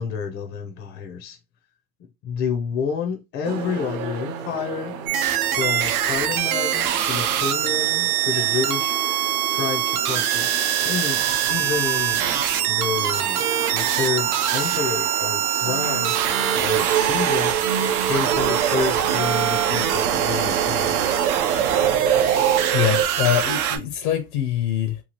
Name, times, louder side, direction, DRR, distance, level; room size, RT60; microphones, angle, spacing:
voice 1, 0.0-1.4 2.2-4.9 5.4-9.0 9.5-10.5 10.8-12.3 12.7-13.4 13.7-16.2 16.6-17.6 18.0-21.0, left 6 dB, 30° left, 0.4 m, -29 dB
sound 1, 3.4-23.0, right 8 dB, 50° right, 0.6 m, -29 dB
sound 2, 5.1-23.8, right 10 dB, 85° right, 0.7 m, -23 dB
voice 2, 22.2-25.0, left 11 dB, 85° left, 0.8 m, -24 dB
2.9 x 2.3 x 2.9 m
supercardioid pair, 130°, 43 cm